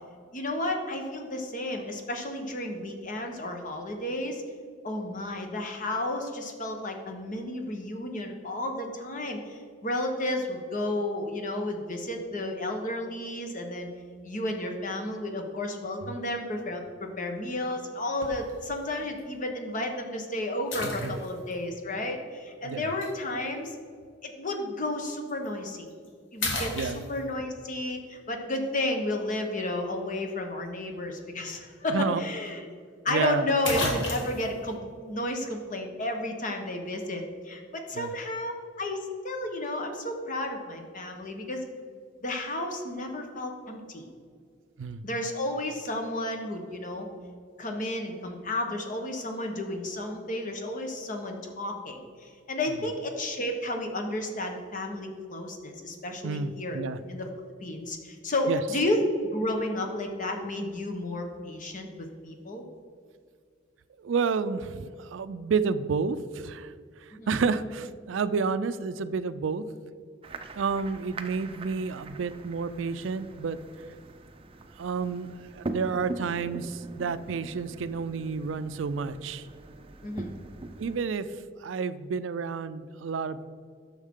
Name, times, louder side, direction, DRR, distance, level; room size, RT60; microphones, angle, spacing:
voice 1, 0.3-4.4 4.8-13.9 14.2-23.8 24.2-25.9 26.3-32.7 33.0-38.5 38.8-41.6 42.2-44.1 45.0-47.1 47.6-56.8 57.1-62.6 67.1-67.3 80.0-80.3, left 1 dB, 45° left, 4 dB, 1.1 m, -32 dB
sound 1, 18.2-18.5 19.2-19.3 20.7-21.5 23.0-23.1 25.3-25.5 25.9-26.1 26.4-27.5 31.6-31.7 32.0-32.1 33.2-33.3 33.6-34.5, left 2 dB, 70° left, 1.5 m, -32 dB
voice 2, 31.9-32.2 33.1-33.5 37.9-38.1 44.8-45.0 56.2-57.0 58.5-58.6 64.0-69.6 70.6-73.6 74.8-79.5 80.8-83.4, right 5 dB, 90° right, 14 dB, 0.4 m, -30 dB
sound 2, 70.2-81.0, right 2 dB, 30° right, 0.5 m, -42 dB
9.8 x 6.4 x 3.7 m, 2.1 s
head